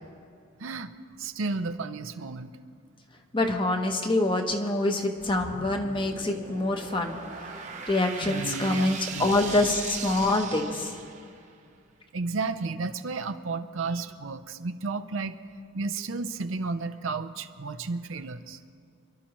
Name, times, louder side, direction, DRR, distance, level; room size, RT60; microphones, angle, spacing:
voice 1, 0.6-0.9 1.2-2.5 8.2-9.3 12.1-15.3 15.7-18.6, right 3 dB, 70° right, 10 dB, 0.6 m, -33 dB
voice 2, 3.3-7.2 7.5-11.0, left 2 dB, 25° left, 4 dB, 1.0 m, -26 dB
sound 1, 5.2-11.5, right 5 dB, 35° right, 1.0 m, -39 dB
28.0 x 12.0 x 3.1 m, 2.3 s
head